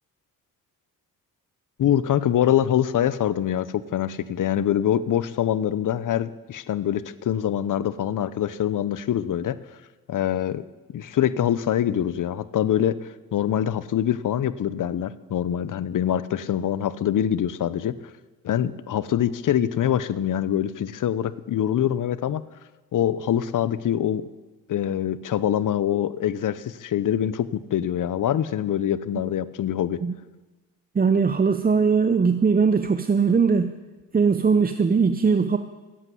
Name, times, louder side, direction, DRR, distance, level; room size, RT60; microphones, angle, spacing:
voice 1, 1.8-9.6 10.1-10.6 10.9-17.9 18.4-22.4 22.9-24.3 24.7-30.0, left 10 dB, 60° left, 17 dB, 0.8 m, -24 dB
voice 2, 30.9-33.7 34.1-35.6, right 5 dB, 25° right, 9 dB, 0.7 m, -20 dB
13.5 x 8.3 x 9.3 m, 1.2 s
cardioid pair, 70°, 36 cm